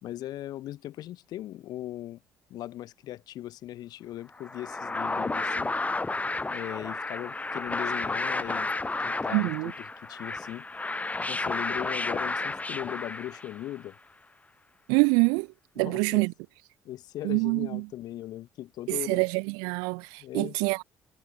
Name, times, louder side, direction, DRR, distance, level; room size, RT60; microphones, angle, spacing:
voice 1, 0.0-2.2 2.5-5.7 6.5-10.9 11.2-14.0 15.8-16.3 16.9-19.2 20.2-20.6, left 14 dB, 70° left, 5.1 m, -39 dB
sound 1, 4.4-13.8, left 3 dB, 20° left, 4.8 m, -32 dB
voice 2, 9.3-9.7 14.9-15.5 15.8-16.3 17.2-17.8 18.9-20.8, right 34 dB, 85° right, 0.4 m, -25 dB
hypercardioid pair, 60°, 7 cm